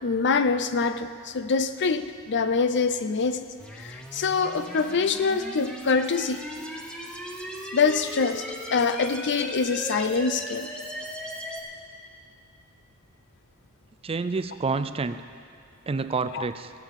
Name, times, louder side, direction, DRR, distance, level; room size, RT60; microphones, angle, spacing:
voice 1, 0.0-3.5 3.7-6.4 7.7-8.5 8.7-10.7 16.3-16.5, left 5 dB, 55° left, 11 dB, 0.6 m, -25 dB
sound 1, 3.6-11.6, equal, 5° left, 1.2 m, -37 dB
voice 2, 14.0-15.2 15.9-16.7, right 4 dB, 25° right, 11 dB, 0.4 m, -28 dB
16.5 x 8.7 x 7.4 m, 2.4 s
head